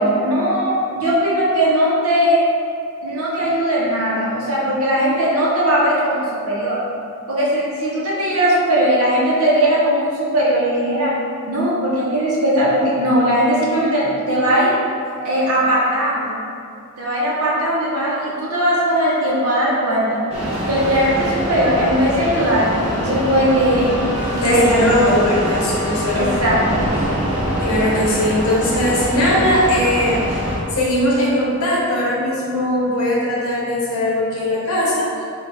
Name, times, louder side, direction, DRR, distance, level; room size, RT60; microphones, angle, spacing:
voice 1, 0.0-2.4 3.0-6.8 7.3-11.1 11.5-14.7 15.2-16.3 17.0-20.2 20.7-23.9 24.4-24.8 26.1-26.9, equal, 75° right, -7 dB, 0.9 m, -18 dB
sound 1, 20.3-30.6, equal, 25° right, 0.9 m, -23 dB
voice 2, 24.4-26.5 27.6-30.2 30.7-35.1, left 1 dB, 75° left, -5 dB, 0.7 m, -19 dB
3.3 x 2.4 x 4.2 m, 2.4 s
head